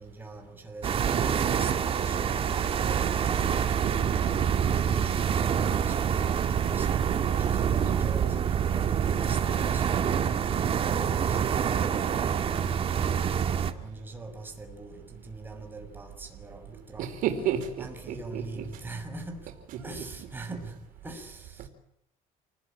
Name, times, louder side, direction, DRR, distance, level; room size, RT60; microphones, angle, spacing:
voice 1, 0.0-3.4 4.0-7.0 7.4-13.2 13.8-17.1 17.8-19.5 19.8-21.7, right 2 dB, 15° right, 5 dB, 6.3 m, -43 dB
sound 1, 0.8-13.7, right 8 dB, 40° right, 2.2 m, -26 dB
voice 2, 1.1-1.6 3.8-4.0 4.2-4.4 7.8-8.0 17.0-18.7 19.7-19.8, right 9 dB, 80° right, 6 dB, 4.6 m, -32 dB
28.5 x 19.5 x 9.0 m, 0.77 s
cardioid pair, 140°, 14 cm